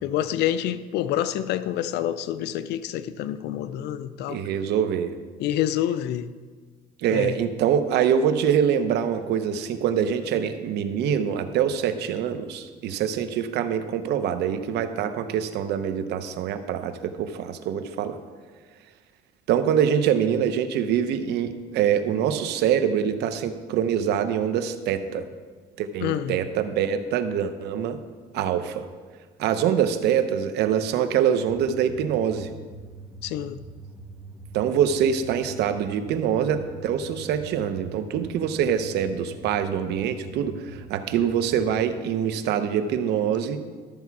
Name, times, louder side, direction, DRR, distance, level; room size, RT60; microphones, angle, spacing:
voice 1, 0.0-4.4 5.4-6.3 7.1-7.4 26.0-26.4 33.2-33.6, left 11 dB, 80° left, 13 dB, 0.5 m, -27 dB
voice 2, 4.3-5.1 7.0-18.2 19.5-25.3 25.8-28.0 28.3-28.9 29.4-32.5 34.5-43.6, right 8 dB, 80° right, 10 dB, 0.8 m, -24 dB
sound 1, 31.4-41.8, right 3 dB, ahead, 1.7 m, -43 dB
13.0 x 7.0 x 4.7 m, 1.5 s
cardioid pair, 110°, 17 cm